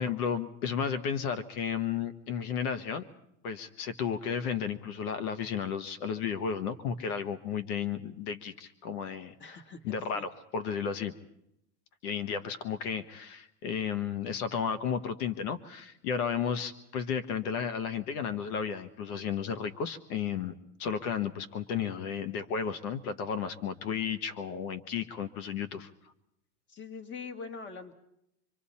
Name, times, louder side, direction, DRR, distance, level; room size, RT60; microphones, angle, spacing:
voice 1, 0.0-3.0 3.4-11.1 12.0-20.5 20.8-25.9, left 7 dB, 80° left, 11 dB, 1.3 m, -33 dB
voice 2, 9.4-10.3 26.7-27.9, left 5 dB, 25° left, 8 dB, 1.6 m, -43 dB
25.5 x 24.5 x 4.3 m, 0.79 s
supercardioid pair, 140°, 44 cm